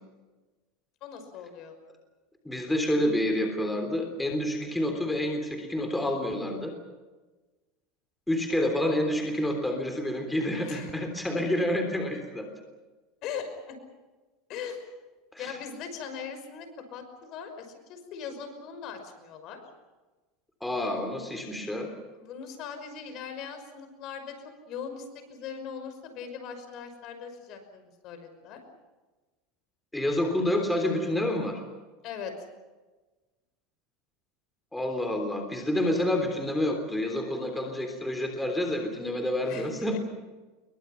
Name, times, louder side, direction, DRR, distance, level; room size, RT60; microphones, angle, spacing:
voice 1, 1.0-1.8 10.6-10.9 13.2-13.8 14.5-14.8 15.4-19.6 20.8-20.9 22.1-28.6 32.0-32.3 39.5-40.0, left 6 dB, 50° left, 7 dB, 5.8 m, -40 dB
voice 2, 2.4-6.8 8.3-12.5 15.3-15.6 20.6-21.9 29.9-31.6 34.7-40.0, left 1 dB, 5° left, 3 dB, 3.5 m, -28 dB
29.5 x 23.0 x 5.9 m, 1.2 s
supercardioid pair, 140°, 0 cm